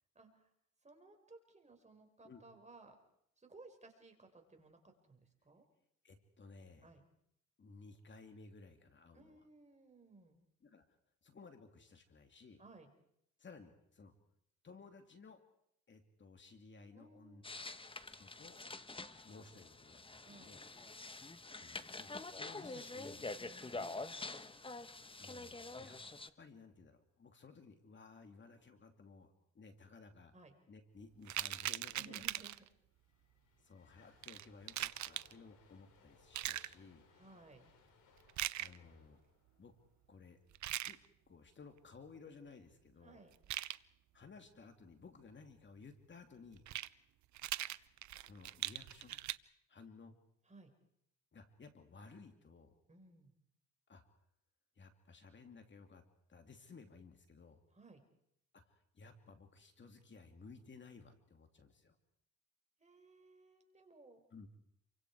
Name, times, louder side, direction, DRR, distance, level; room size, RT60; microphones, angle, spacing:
voice 1, 0.2-0.5 0.8-3.0 3.4-5.6 6.8-7.1 9.1-10.5 12.6-12.9 16.9-17.5 20.2-20.6 23.4-24.4 30.3-30.5 32.0-32.6 37.1-37.7 43.0-43.4 50.4-50.7 52.9-53.3 57.7-58.0 62.8-64.2, right 3 dB, 25° right, 4 dB, 5.2 m, -60 dB
voice 2, 6.0-6.9 7.6-9.4 10.6-10.8 11.2-12.6 13.4-14.1 14.6-15.4 15.9-17.8 18.0-18.6 19.2-20.6 21.5-24.0 25.2-26.0 26.4-30.3 30.7-32.2 33.6-37.1 38.6-39.2 39.6-39.7 40.1-40.4 40.8-41.0 41.3-43.2 44.1-46.6 48.2-49.2 49.7-50.2 51.3-52.7 53.9-54.0 54.8-57.6 58.5-62.0 64.3-64.5, left 4 dB, 40° left, 6 dB, 2.7 m, -57 dB
sound 1, 17.4-26.3, left 3 dB, 15° left, 1.2 m, -47 dB
sound 2, 31.3-32.7 34.2-35.3 36.3-36.7 38.3-38.8 40.5-40.9 43.3-43.8 46.5-46.9 47.3-49.4, right 14 dB, 70° right, 0.8 m, -40 dB
sound 3, 32.7-40.9, left 5 dB, 80° left, 6.6 m, -69 dB
29.0 x 24.5 x 4.9 m, 0.74 s
cardioid pair, 90°, 30 cm